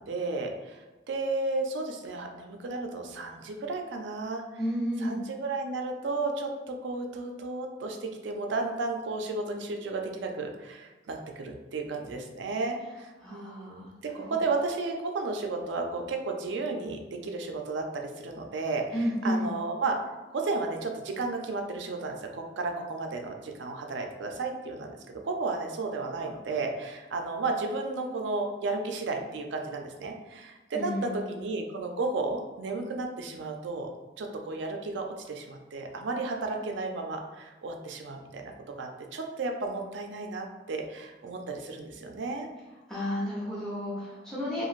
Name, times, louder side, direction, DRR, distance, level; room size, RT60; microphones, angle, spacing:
voice 1, 0.0-4.6 5.0-20.0 20.3-33.9 34.2-42.5, right 3 dB, 70° right, 3 dB, 0.4 m, -33 dB
voice 2, 4.6-5.2 13.2-13.8 14.2-14.3 18.9-19.5 30.7-31.2 42.9-44.7, equal, 5° left, -8 dB, 0.6 m, -31 dB
3.1 x 2.5 x 2.4 m, 1.2 s
head